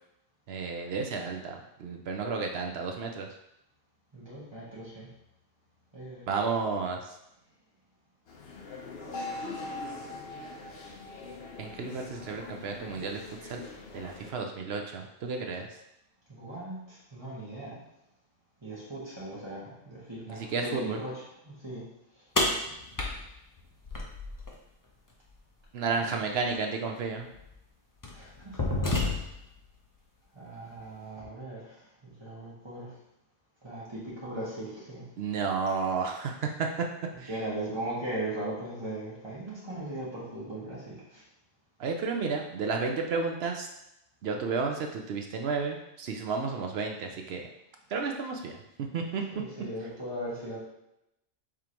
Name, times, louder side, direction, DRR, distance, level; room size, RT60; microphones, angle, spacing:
voice 1, 0.5-3.3 6.3-7.1 11.6-13.6 13.9-15.7 20.3-21.0 25.7-27.3 35.2-36.5 37.2-37.3 41.8-43.7 44.2-47.4 47.9-48.6 48.9-49.2, right 4 dB, 65° right, 3 dB, 0.8 m, -32 dB
voice 2, 4.1-5.1 5.9-6.3 16.3-17.8 18.6-21.8 22.2-22.3 26.0-26.3 28.1-28.6 28.9-29.2 30.3-32.9 33.6-35.0 37.1-41.2 49.3-50.6, right 1 dB, 20° right, -7 dB, 1.7 m, -38 dB
sound 1, 8.3-14.3, left 4 dB, 60° left, 1.0 m, -44 dB
sound 2, 9.1-13.1, left 1 dB, 85° left, 1.3 m, -43 dB
sound 3, 22.4-24.5 26.4-26.5 27.3-27.5 28.0-29.5, left 2 dB, 30° left, 0.4 m, -30 dB
4.9 x 3.6 x 2.9 m, 0.84 s
omnidirectional pair, 1.3 m